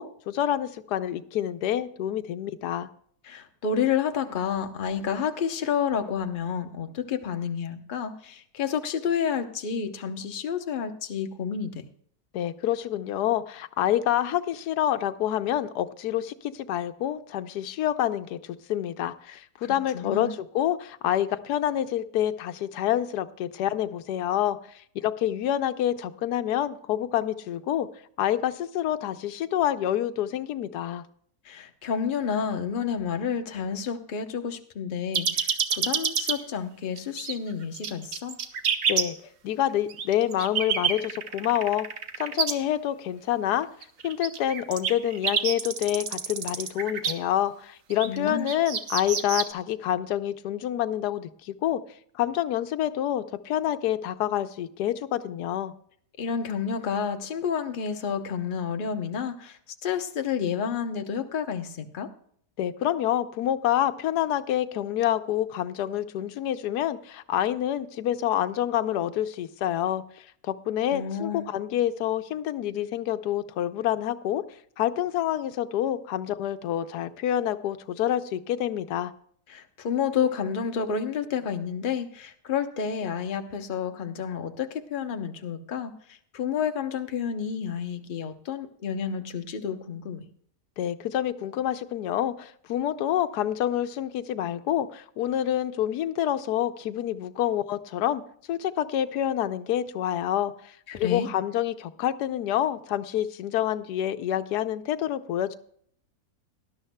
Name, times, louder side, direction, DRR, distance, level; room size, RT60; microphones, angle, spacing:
voice 1, 0.0-2.9 12.3-27.9 28.2-31.0 38.9-39.2 39.4-41.9 42.2-43.7 44.0-51.8 52.2-55.7 62.6-74.4 74.8-79.1 90.8-98.2 98.5-105.6, left 11 dB, 90° left, 11 dB, 1.2 m, -27 dB
voice 2, 3.2-11.8 19.3-19.4 19.6-20.3 31.4-38.4 48.0-48.5 56.2-62.1 70.9-71.5 79.5-90.2 100.9-101.3, left 7 dB, 40° left, 6 dB, 0.9 m, -30 dB
sound 1, 35.1-36.3 37.0-37.3 37.7-39.0 39.9-42.5 43.8-47.1 47.9-49.5, right 7 dB, 60° right, 1.3 m, -27 dB
18.5 x 12.0 x 2.2 m, 0.63 s
omnidirectional pair, 1.7 m